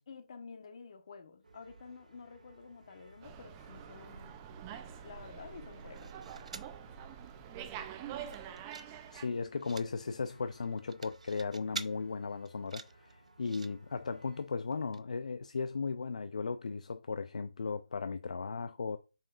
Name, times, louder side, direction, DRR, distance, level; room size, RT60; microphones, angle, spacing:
voice 1, 0.1-4.4 5.0-6.5, left 5 dB, 40° left, 1.1 m, -51 dB
sound 1, 1.4-14.5, right 3 dB, 90° right, 1.9 m, -58 dB
Slam, 3.2-9.3, right 9 dB, 15° right, 0.4 m, -46 dB
sound 2, 5.7-6.8 7.2-7.3 7.6-7.8 8.2-8.9 9.2-9.9 10.6-11.9 12.4-13.7 14.6-14.7 14.9-15.0, right 4 dB, 60° right, 0.7 m, -46 dB
voice 2, 9.1-19.0, left 4 dB, 60° left, 0.5 m, -36 dB
7.2 x 5.5 x 2.4 m
figure-of-eight pair, 165°, 4 cm